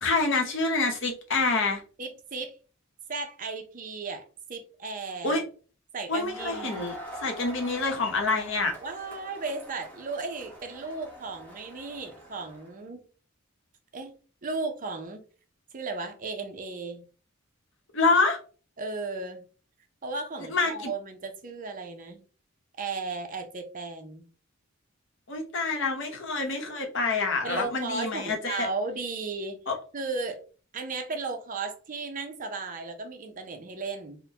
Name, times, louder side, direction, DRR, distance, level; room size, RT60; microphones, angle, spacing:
voice 1, 0.0-1.8 5.2-5.4 6.1-6.9 7.2-8.7 17.9-18.4 20.5-20.9 25.3-28.7 29.7-29.8, left 3 dB, 65° left, 0.9 m, -26 dB
voice 2, 2.0-2.5 3.1-5.4 5.9-6.8 8.8-13.1 13.9-14.1 14.4-15.2 15.7-17.1 18.8-19.4 20.0-22.2 22.8-24.3 27.4-29.6 29.9-30.4 30.7-34.2, right 3 dB, 40° right, 0.6 m, -35 dB
Crowd, 6.2-12.7, equal, 10° left, 1.0 m, -44 dB
3.7 x 2.1 x 2.8 m
head